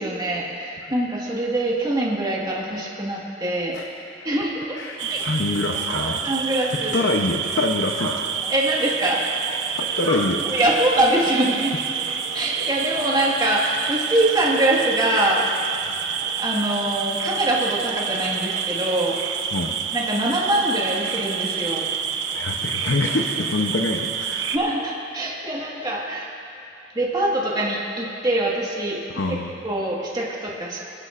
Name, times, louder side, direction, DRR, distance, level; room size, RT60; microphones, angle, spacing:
voice 1, 0.0-3.8 4.2-4.6 5.1-5.2 6.2-7.0 8.5-9.2 10.4-11.7 12.3-15.5 16.4-19.2 19.9-21.9 24.5-26.3 26.9-29.0 29.3-29.4 29.6-30.8, right 1 dB, 25° right, -3 dB, 1.6 m, -23 dB
voice 2, 4.7-6.2 6.9-8.2 9.8-10.8 15.9-16.0 19.5-19.8 22.3-24.6 29.1-29.5, left 2 dB, 65° left, 1 dB, 0.7 m, -25 dB
sound 1, 5.0-24.6, right 7 dB, 90° right, 0.7 m, -28 dB
29.0 x 11.0 x 2.5 m, 2.6 s
head